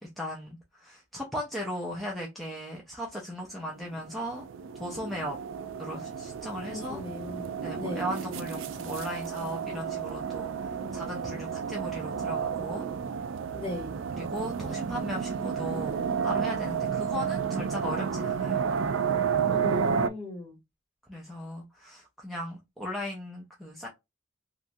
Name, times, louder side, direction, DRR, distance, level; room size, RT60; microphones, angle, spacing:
voice 1, 0.0-4.4 4.8-5.4 5.8-7.0 7.6-12.9 14.2-18.7 21.1-23.9, equal, ahead, 0.5 m, -37 dB
sound 1, 3.9-20.1, right 6 dB, 85° right, 0.4 m, -31 dB
voice 2, 6.7-7.5 7.8-8.1 13.5-14.0 19.5-20.6, left 2 dB, 25° left, 1.3 m, -38 dB
3.0 x 2.4 x 2.6 m
head